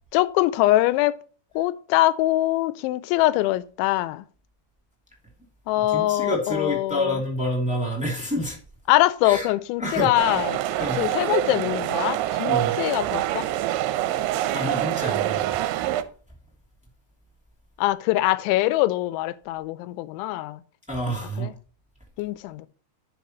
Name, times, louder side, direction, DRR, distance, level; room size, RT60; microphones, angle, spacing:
voice 1, 0.1-1.2 1.6-4.2 5.7-7.2 8.9-10.6 11.0-13.5 17.8-20.6 21.4-21.5 22.2-22.7, left 16 dB, 85° left, 2.9 m, -23 dB
voice 2, 5.7-8.6 9.2-9.5 9.8-10.1 10.8-11.0 12.4-12.8 14.5-15.6 20.9-21.5, equal, 5° right, 1.0 m, -28 dB
sound 1, 10.2-16.0, right 13 dB, 90° right, 3.0 m, -25 dB
10.5 x 6.6 x 3.0 m
omnidirectional pair, 5.3 m